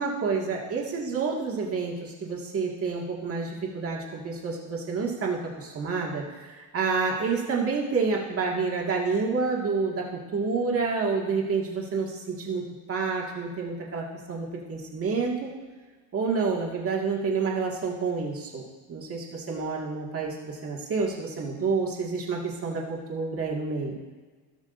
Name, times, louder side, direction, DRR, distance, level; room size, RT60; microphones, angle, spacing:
voice 1, 0.0-10.0 10.3-12.6 12.9-15.5 16.1-18.6 18.9-24.0, right 4 dB, 30° right, -2 dB, 2.0 m, -29 dB
17.5 x 6.2 x 2.6 m, 1.4 s
cardioid pair, 120°, 43 cm